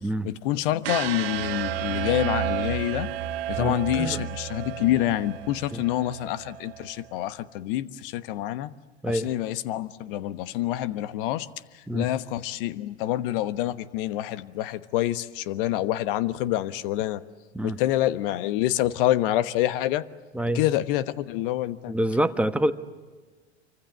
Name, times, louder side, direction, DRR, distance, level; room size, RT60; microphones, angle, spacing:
voice 1, 0.2-3.1 3.5-8.7 9.1-11.5 11.7-17.2 17.6-20.0 20.5-21.9, left 14 dB, 55° left, 14 dB, 1.2 m, -27 dB
sound 1, 0.8-6.9, right 10 dB, 60° right, 1.3 m, -32 dB
voice 2, 3.6-4.2 5.7-5.8 9.0-9.3 11.9-12.1 17.5-17.8 20.3-20.6 21.9-22.7, right 1 dB, 5° right, 9 dB, 1.2 m, -26 dB
28.5 x 25.0 x 7.4 m, 1.3 s
figure-of-eight pair, 90°, 33 cm